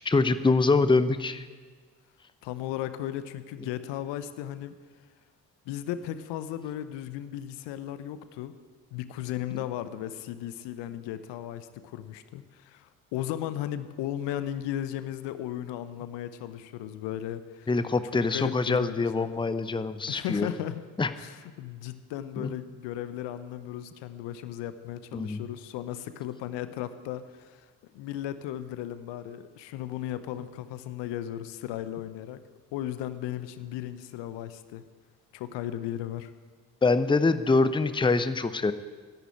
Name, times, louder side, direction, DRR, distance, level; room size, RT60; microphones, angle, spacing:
voice 1, 0.0-1.5 17.7-20.5 21.0-21.1 22.4-22.5 25.1-25.4 36.8-38.7, left 3 dB, 10° left, 12 dB, 0.8 m, -24 dB
voice 2, 2.4-4.7 5.7-8.5 8.9-17.7 18.3-19.4 20.1-20.8 21.2-27.7 27.9-32.4 32.7-34.8 35.3-36.3, left 12 dB, 65° left, 13 dB, 0.9 m, -36 dB
12.0 x 11.0 x 8.8 m, 1.5 s
figure-of-eight pair, 45°, 47 cm